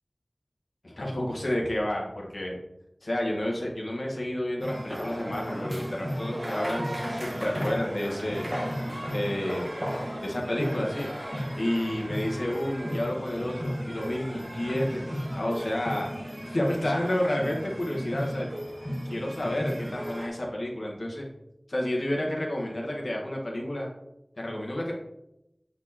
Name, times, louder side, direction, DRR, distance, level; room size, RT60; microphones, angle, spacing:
voice 1, 0.8-2.6 3.0-8.5 9.1-9.7 10.2-11.1 11.5-16.1 16.4-18.5 19.1-21.2 21.7-23.9 24.4-24.9, left 1 dB, 80° left, -2 dB, 1.4 m, -30 dB
sound 1, 4.6-20.3, equal, 40° right, 1.5 m, -35 dB
sound 2, 4.9-12.7, equal, 10° right, 1.4 m, -39 dB
8.1 x 4.4 x 2.9 m, 0.86 s
wide cardioid pair, 45°, 0 cm